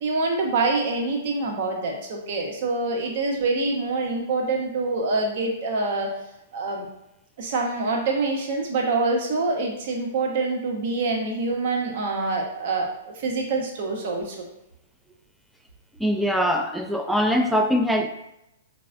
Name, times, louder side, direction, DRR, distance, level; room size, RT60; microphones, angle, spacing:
voice 1, 0.0-6.1 6.5-6.9 7.4-14.5, right 3 dB, 50° right, 0 dB, 0.7 m, -25 dB
voice 2, 16.0-18.1, equal, ahead, 4 dB, 0.3 m, -22 dB
3.9 x 2.1 x 2.4 m, 0.86 s
figure-of-eight pair, 110°, 0 cm